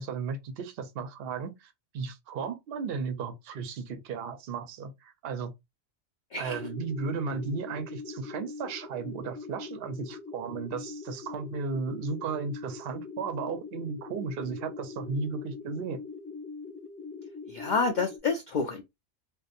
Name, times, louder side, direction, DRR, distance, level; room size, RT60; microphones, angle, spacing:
voice 1, 0.0-5.5 6.4-16.0, right 5 dB, 60° right, 0.7 m, -35 dB
sound 1, 6.5-18.2, left 4 dB, 15° left, 0.6 m, -42 dB
voice 2, 17.5-18.8, left 4 dB, 75° left, 0.4 m, -28 dB
2.7 x 2.2 x 2.4 m
omnidirectional pair, 1.3 m